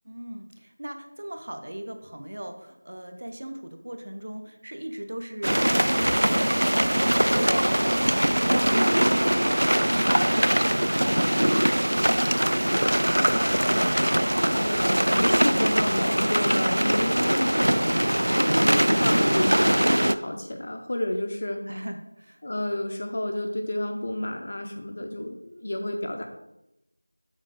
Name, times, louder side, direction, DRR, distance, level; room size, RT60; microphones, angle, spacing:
voice 1, 0.0-9.5 9.8-13.3 21.7-22.4, right 1 dB, 35° right, 7 dB, 0.6 m, -39 dB
sound 1, 5.4-20.1, equal, 85° right, 0.3 m, -22 dB
voice 2, 14.4-18.1 18.6-21.6 22.4-26.2, left 1 dB, 20° left, 3 dB, 0.3 m, -30 dB
7.5 x 4.1 x 4.7 m, 0.88 s
figure-of-eight pair, 180°, 0 cm